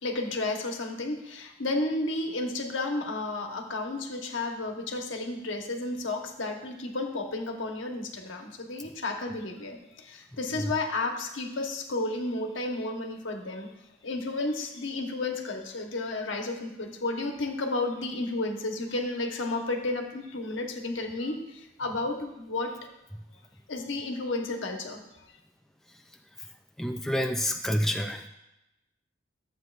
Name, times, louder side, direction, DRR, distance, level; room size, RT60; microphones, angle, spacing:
voice 1, 0.0-13.7 14.0-22.9 23.7-25.0, left 2 dB, 80° left, 3 dB, 1.1 m, -32 dB
voice 2, 26.8-28.3, equal, ahead, 4 dB, 0.3 m, -28 dB
12.5 x 7.8 x 2.5 m, 0.92 s
head